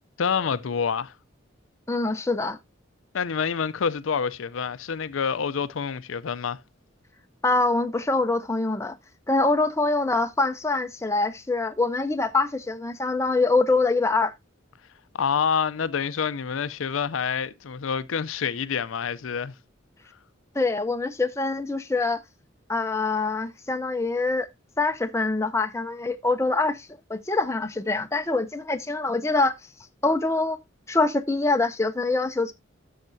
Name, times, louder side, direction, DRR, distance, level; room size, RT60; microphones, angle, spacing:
voice 1, 0.2-1.1 3.1-6.6 15.1-19.5, left 6 dB, 80° left, 0.5 m, -27 dB
voice 2, 1.9-2.6 7.4-8.9 9.3-14.3 20.5-22.2 22.7-24.5 24.8-29.5 30.0-30.6 30.9-32.5, left 3 dB, 15° left, 0.5 m, -24 dB
12.0 x 6.5 x 2.6 m
head